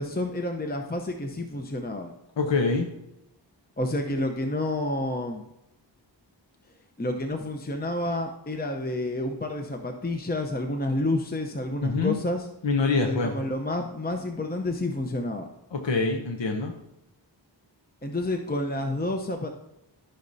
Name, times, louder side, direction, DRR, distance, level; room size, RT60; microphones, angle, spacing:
voice 1, 0.0-2.1 3.8-5.4 7.0-12.5 12.9-15.5 18.0-19.5, left 1 dB, 20° left, 4 dB, 0.7 m, -29 dB
voice 2, 2.4-2.9 11.8-12.2 12.6-13.3 15.7-16.7, left 3 dB, 75° left, 2 dB, 0.9 m, -25 dB
13.5 x 5.6 x 2.7 m, 0.88 s
wide cardioid pair, 45°, 44 cm